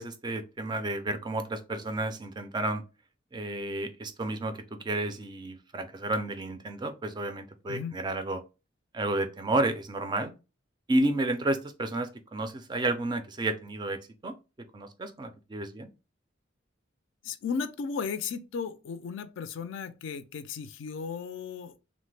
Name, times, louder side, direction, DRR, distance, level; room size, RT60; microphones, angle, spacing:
voice 1, 0.0-2.8 3.3-8.4 8.9-10.3 10.9-14.4 14.7-15.9, right 2 dB, 20° right, 0.3 m, -31 dB
voice 2, 17.2-21.7, left 6 dB, 70° left, 0.3 m, -35 dB
3.0 x 2.1 x 3.2 m
head